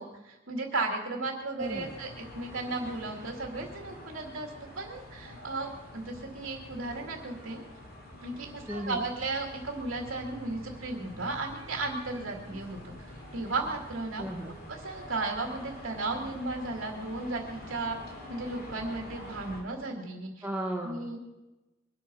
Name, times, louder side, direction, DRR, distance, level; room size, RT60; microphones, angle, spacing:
voice 1, 0.0-4.5 4.8-7.6 8.2-14.2 14.7-18.0 18.3-20.5 20.8-21.2, right 2 dB, 85° right, 0 dB, 2.4 m, -35 dB
sound 1, 1.6-19.6, left 1 dB, 50° left, 3.8 m, -46 dB
voice 2, 1.6-2.0 8.7-9.0 14.2-14.5 20.4-21.2, right 1 dB, 10° right, -2 dB, 1.3 m, -35 dB
23.0 x 9.3 x 6.3 m, 1.1 s
head